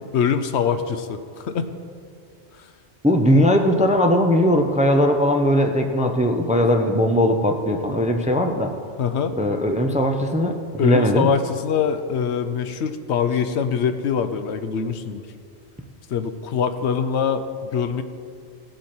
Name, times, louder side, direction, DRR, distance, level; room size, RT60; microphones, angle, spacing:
voice 1, 0.1-1.7 9.0-9.3 10.8-15.2 16.1-18.0, left 7 dB, 75° left, 10 dB, 0.9 m, -23 dB
voice 2, 3.0-8.7 9.4-10.5 10.8-11.3, equal, 10° right, 4 dB, 0.5 m, -19 dB
17.0 x 7.8 x 4.4 m, 2.4 s
omnidirectional pair, 1.2 m